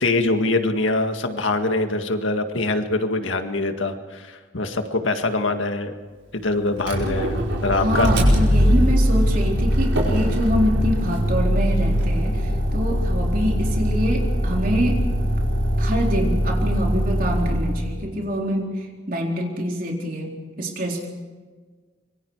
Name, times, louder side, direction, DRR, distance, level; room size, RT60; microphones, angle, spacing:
voice 1, 0.0-5.9 6.3-8.1, left 2 dB, 90° left, 6 dB, 1.9 m, -23 dB
Motor vehicle (road), 6.8-18.0, equal, 90° right, 5.3 m, -21 dB
voice 2, 7.7-15.0 15.8-21.1, equal, 45° right, 0 dB, 4.1 m, -25 dB
25.5 x 23.5 x 4.9 m, 1.4 s
head